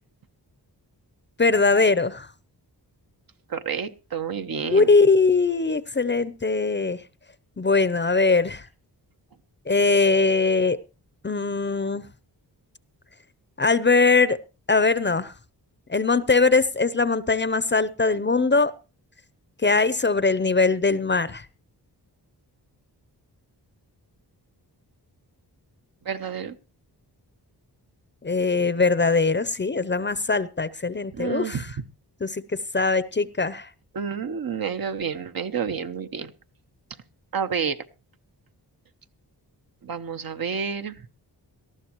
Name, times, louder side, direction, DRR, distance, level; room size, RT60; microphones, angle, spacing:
voice 1, 1.4-2.3 4.7-7.0 7.6-8.7 9.7-10.8 11.2-12.1 13.6-14.4 14.7-15.3 15.9-18.7 19.6-21.4 28.2-31.7 32.2-33.7, left 4 dB, 25° left, 0.7 m, -21 dB
voice 2, 3.5-4.9 26.0-26.5 31.1-31.6 33.9-36.3 37.3-37.8 39.8-41.0, right 6 dB, 55° right, 1.0 m, -29 dB
18.5 x 13.0 x 3.0 m
cardioid pair, 75°, 41 cm